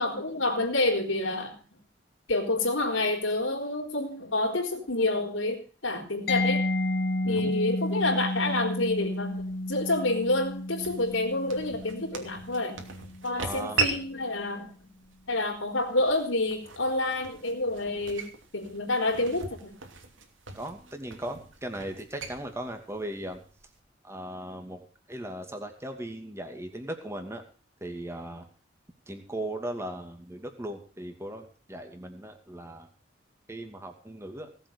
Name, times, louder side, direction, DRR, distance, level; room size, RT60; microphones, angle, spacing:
voice 1, 0.0-1.6 2.3-6.7 7.3-12.8 13.2-14.9 15.3-19.7, left 2 dB, 80° left, 3 dB, 4.2 m, -28 dB
Mallet percussion, 6.3-13.8, left 1 dB, 55° left, 1.5 m, -32 dB
voice 2, 7.2-7.6 13.4-13.9 20.5-23.4 24.0-27.4 27.8-28.5 29.1-32.9 33.5-34.5, right 1 dB, 15° right, 5 dB, 2.5 m, -38 dB
sound 1, 7.7-23.8, right 4 dB, 85° right, 2.8 m, -40 dB
18.0 x 7.9 x 6.5 m, 0.40 s
head